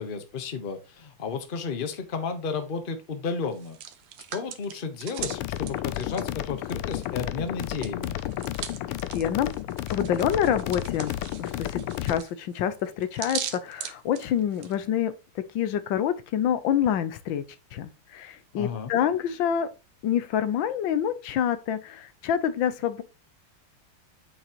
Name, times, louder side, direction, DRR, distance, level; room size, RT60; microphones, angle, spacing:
voice 1, 0.0-3.8 4.3-8.2 18.5-18.9, left 5 dB, 35° left, 0.8 m, -33 dB
Hands, 3.5-7.2 7.5-14.7, right 10 dB, 85° right, 1.8 m, -40 dB
sound 1, 5.2-12.2, left 13 dB, 90° left, 1.5 m, -32 dB
voice 2, 9.1-9.5 9.9-11.1 11.4-17.4 17.7-19.7 20.0-23.0, left 9 dB, 70° left, 1.4 m, -27 dB
8.1 x 6.3 x 2.9 m
omnidirectional pair, 2.4 m